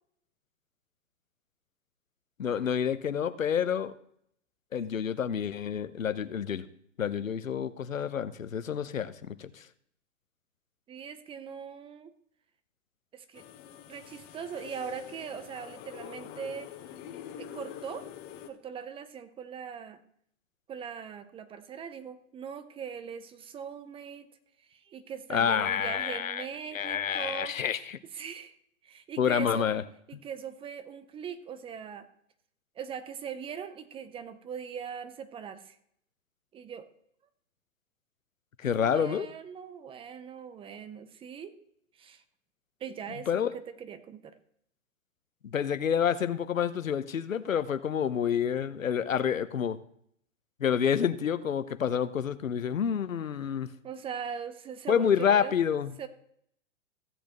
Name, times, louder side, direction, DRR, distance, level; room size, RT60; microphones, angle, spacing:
voice 1, 2.4-3.9 4.7-6.6 7.0-9.5 25.3-26.4 26.7-28.0 29.2-29.8 38.6-39.3 43.3-43.5 45.4-49.8 50.6-53.7 54.9-55.9, left 8 dB, 90° left, 13 dB, 0.8 m, -28 dB
voice 2, 10.9-12.1 13.1-13.4 13.9-16.7 17.4-18.0 18.5-20.0 20.7-24.3 24.7-27.5 28.1-28.6 28.8-29.7 30.1-32.1 32.8-35.8 36.5-36.9 38.8-41.6 42.0-42.2 42.8-44.3 53.8-55.5 56.0-56.1, right 7 dB, 15° right, 13 dB, 0.5 m, -40 dB
sound 1, 13.3-18.5, left 10 dB, 35° left, 1.2 m, -45 dB
15.5 x 8.2 x 3.0 m, 0.69 s
hypercardioid pair, 115°, 39 cm